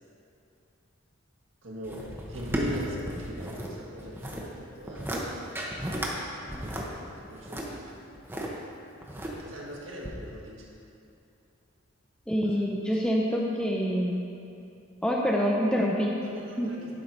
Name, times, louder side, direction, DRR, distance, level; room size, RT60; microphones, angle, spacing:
voice 1, 1.6-5.5 6.6-7.9 9.4-10.7 12.4-12.9 16.2-16.9, equal, 70° right, -4 dB, 1.6 m, -41 dB
sound 1, 1.8-3.7 4.0-4.5 4.8-5.2 5.6-6.1 6.5-8.5 9.0-9.6 10.0-10.1, right 1 dB, 10° right, 0.9 m, -34 dB
voice 2, 12.3-14.2 15.0-16.2 16.6-16.7, equal, 5° left, -2 dB, 0.5 m, -26 dB
11.5 x 4.5 x 5.3 m, 2.7 s
head